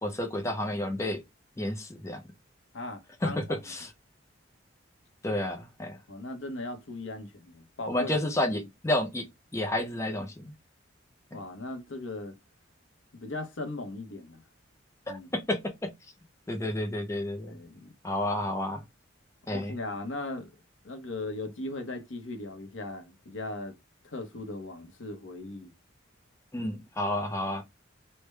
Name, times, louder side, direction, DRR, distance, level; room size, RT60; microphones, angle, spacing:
voice 1, 0.0-1.2 1.6-2.2 3.2-3.9 5.2-6.0 7.9-10.5 11.3-11.4 15.1-15.9 16.5-17.6 18.0-18.8 19.5-19.7 26.5-27.6, left 1 dB, 15° left, 0.5 m, -31 dB
voice 2, 2.7-3.6 6.1-8.2 8.5-8.7 11.3-12.4 13.1-14.4 15.1-15.3 17.5-17.9 19.5-20.5 20.8-23.7 24.0-25.7, left 2 dB, 75° left, 0.8 m, -38 dB
3.3 x 2.1 x 3.1 m
head